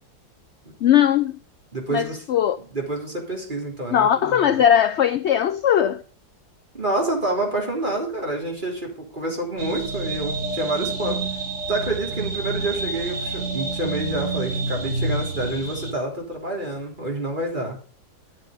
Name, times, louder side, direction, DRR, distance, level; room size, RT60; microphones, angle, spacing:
voice 1, 0.8-1.3 1.9-2.6 3.9-6.0, left 9 dB, 65° left, 0.7 m, -19 dB
voice 2, 1.7-2.2 2.7-4.6 6.7-11.2 11.7-17.8, right 2 dB, 30° right, 3.6 m, -28 dB
sound 1, 9.6-15.9, right 3 dB, 50° right, 2.4 m, -28 dB
11.5 x 7.4 x 5.2 m
omnidirectional pair, 1.7 m